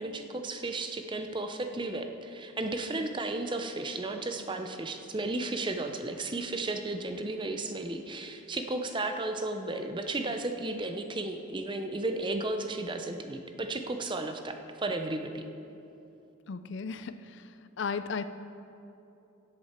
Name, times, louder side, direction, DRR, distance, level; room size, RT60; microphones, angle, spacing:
voice 1, 0.0-15.4, right 2 dB, 25° right, 6 dB, 0.6 m, -34 dB
voice 2, 16.5-17.4 17.8-18.2, left 5 dB, 60° left, 11 dB, 0.4 m, -35 dB
16.5 x 7.7 x 4.4 m, 2.9 s
head